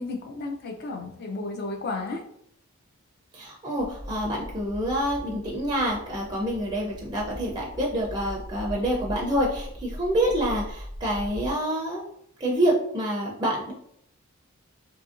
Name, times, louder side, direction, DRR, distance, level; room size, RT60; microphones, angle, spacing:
voice 1, 0.0-2.2, left 3 dB, 50° left, 3 dB, 0.5 m, -33 dB
voice 2, 3.3-12.1 12.4-13.7, right 1 dB, 20° right, -2 dB, 0.4 m, -27 dB
sound 1, 3.8-11.5, equal, 70° left, 1.1 m, -40 dB
2.7 x 2.6 x 2.4 m, 0.69 s
head